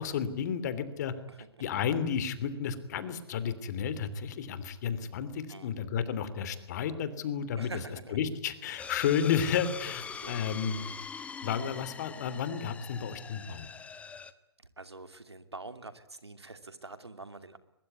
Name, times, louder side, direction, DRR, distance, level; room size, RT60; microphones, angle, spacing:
voice 1, 0.0-1.1 1.6-7.7 8.1-10.8 11.4-13.7, left 7 dB, 40° left, 13 dB, 3.1 m, -32 dB
voice 2, 1.3-1.6 5.5-5.7 7.6-8.2 9.9-10.4 14.8-17.6, right 3 dB, 80° right, 10 dB, 2.7 m, -46 dB
sound 1, 8.8-14.3, left 6 dB, 10° left, 1.3 m, -43 dB
23.0 x 22.0 x 9.6 m, 0.91 s
figure-of-eight pair, 125°, 13 cm